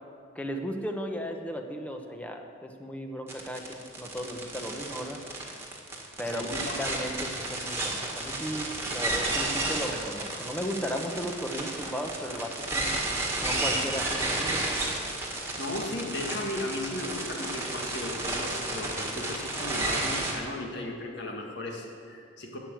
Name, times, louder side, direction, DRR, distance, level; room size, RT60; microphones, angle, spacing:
voice 1, 0.3-5.2 6.2-12.9 13.4-14.6, equal, 5° left, 3 dB, 0.9 m, -35 dB
sound 1, 3.3-20.3, right 2 dB, 15° right, 1.8 m, -32 dB
voice 2, 6.2-6.7 15.6-22.6, left 1 dB, 60° left, 1 dB, 1.9 m, -36 dB
11.5 x 7.6 x 8.9 m, 2.4 s
head